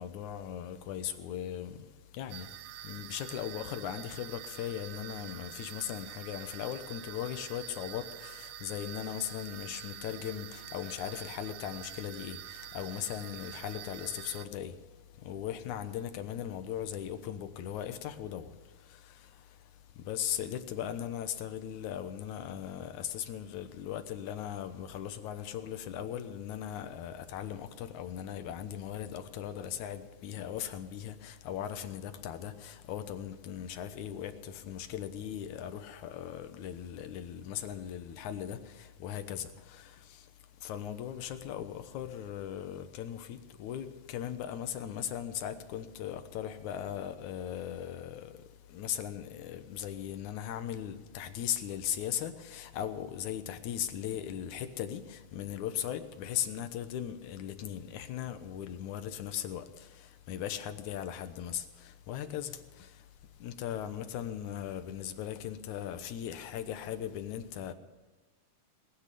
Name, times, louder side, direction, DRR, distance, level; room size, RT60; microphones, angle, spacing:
voice 1, 0.0-14.9 15.1-40.3 40.6-63.1 63.4-67.7, left 10 dB, 75° left, 2.4 m, -38 dB
sound 1, 2.3-14.5, right 14 dB, 80° right, 2.1 m, -46 dB
20.0 x 10.0 x 6.8 m
omnidirectional pair, 3.6 m